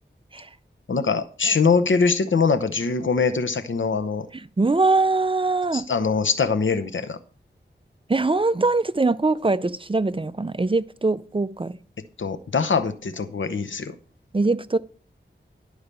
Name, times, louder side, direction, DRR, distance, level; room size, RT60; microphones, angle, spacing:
voice 1, 0.9-4.3 5.7-7.2 12.2-13.9, left 5 dB, 85° left, 0.8 m, -23 dB
voice 2, 4.6-5.9 8.1-11.7 14.3-14.8, right 3 dB, 25° right, 0.5 m, -22 dB
11.5 x 4.8 x 6.8 m
wide cardioid pair, 65°, 19 cm